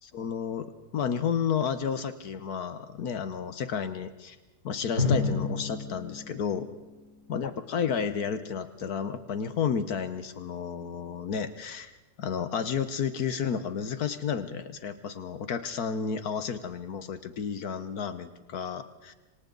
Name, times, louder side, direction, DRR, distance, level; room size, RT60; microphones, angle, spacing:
voice 1, 0.1-4.4 4.6-6.7 7.3-11.9 12.2-19.1, left 7 dB, 70° left, 11 dB, 1.5 m, -31 dB
Drum, 5.0-7.7, left 3 dB, 50° right, 8.1 m, -31 dB
27.0 x 25.5 x 4.0 m, 1.1 s
omnidirectional pair, 1.7 m